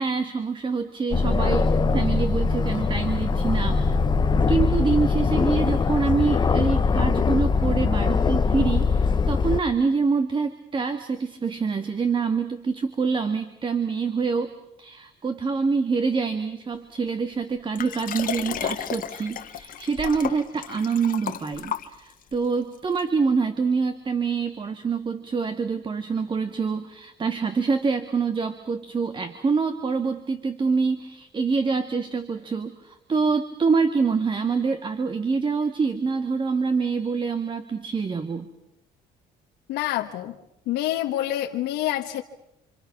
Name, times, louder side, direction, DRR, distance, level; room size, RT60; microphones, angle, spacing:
voice 1, 0.0-3.8 4.5-38.5, right 5 dB, 30° right, 9 dB, 1.6 m, -26 dB
Aircraft, 1.1-9.6, left 4 dB, 25° left, 1.0 m, -22 dB
Liquid, 17.8-22.3 23.0-23.1, left 9 dB, 55° left, 1.6 m, -33 dB
voice 2, 39.7-40.4 40.7-42.2, left 13 dB, 85° left, 3 dB, 1.3 m, -27 dB
28.5 x 25.5 x 5.9 m, 0.84 s
cardioid pair, 110°, 17 cm